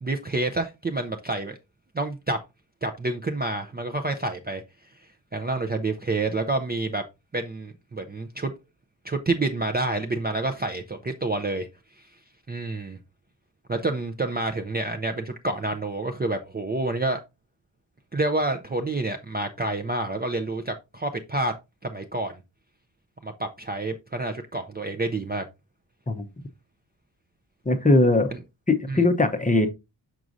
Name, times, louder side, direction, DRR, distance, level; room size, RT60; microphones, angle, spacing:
voice 1, 0.0-1.6 1.9-2.4 2.8-4.6 5.3-7.0 7.3-8.5 9.0-11.7 12.5-13.0 13.7-17.2 18.1-21.5 21.8-22.4 23.2-25.4 28.9-29.0, right 2 dB, 20° right, 0.4 m, -28 dB
voice 2, 27.7-28.3 28.7-29.7, left 2 dB, 15° left, 0.6 m, -20 dB
6.1 x 6.1 x 2.6 m
wide cardioid pair, 175°, 47 cm